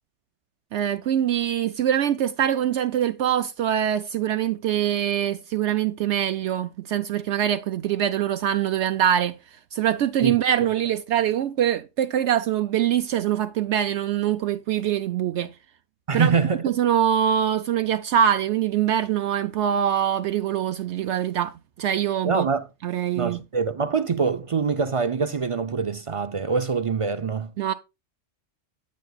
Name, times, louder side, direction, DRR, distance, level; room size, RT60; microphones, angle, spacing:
voice 1, 0.7-9.4 9.7-15.5 16.1-16.4 16.6-21.5 21.8-22.5 22.8-23.4 27.6-27.7, right 10 dB, 70° right, 0.8 m, -23 dB
voice 2, 16.1-16.6 22.2-22.7 23.2-27.5, right 5 dB, 50° right, 0.3 m, -24 dB
9.2 x 8.4 x 2.3 m
omnidirectional pair, 1.3 m